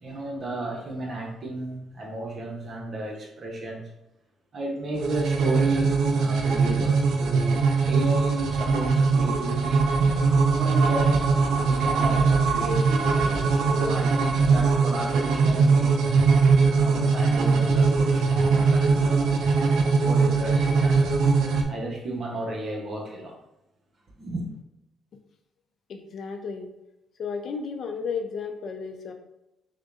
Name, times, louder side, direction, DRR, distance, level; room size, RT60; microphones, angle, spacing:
voice 1, 0.0-3.9 4.5-9.9 10.5-16.2 16.7-19.3 19.6-21.1 21.7-23.4 24.2-24.4, right 1 dB, 50° right, 0 dB, 0.9 m, -33 dB
sound 1, 5.0-21.6, right 4 dB, 80° right, 0.5 m, -21 dB
voice 2, 25.9-26.7 27.2-29.1, left 5 dB, 60° left, 5 dB, 0.5 m, -33 dB
6.2 x 2.2 x 2.5 m, 0.91 s
cardioid pair, 90°, 0 cm